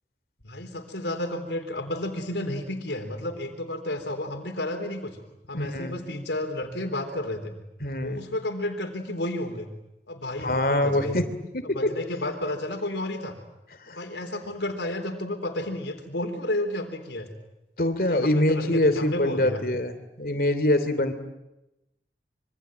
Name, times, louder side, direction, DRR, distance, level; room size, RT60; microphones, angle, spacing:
voice 1, 0.4-5.2 5.5-7.5 8.0-9.7 10.1-11.2 11.6-13.4 13.9-17.3 18.0-19.6, left 1 dB, 80° left, 5 dB, 3.9 m, -31 dB
voice 2, 5.5-6.0 7.8-8.2 10.4-11.2 11.5-11.6 13.9-14.0 17.8-21.1, left 1 dB, 55° left, 10 dB, 2.9 m, -24 dB
26.5 x 24.5 x 9.1 m, 0.92 s
head